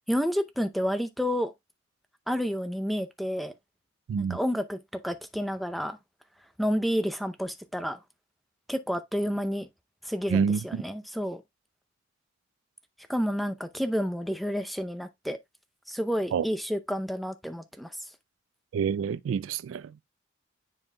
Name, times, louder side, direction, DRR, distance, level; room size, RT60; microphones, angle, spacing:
voice 1, 0.1-1.5 2.3-3.5 4.2-4.8 5.0-6.0 6.6-8.0 8.7-9.7 10.0-11.4 13.1-15.4 15.9-17.9, equal, ahead, 0.6 m, -30 dB
voice 2, 4.1-4.4 10.3-10.8 16.3-16.5 18.7-20.0, right 6 dB, 85° right, 0.3 m, -27 dB
10.0 x 4.3 x 2.2 m
head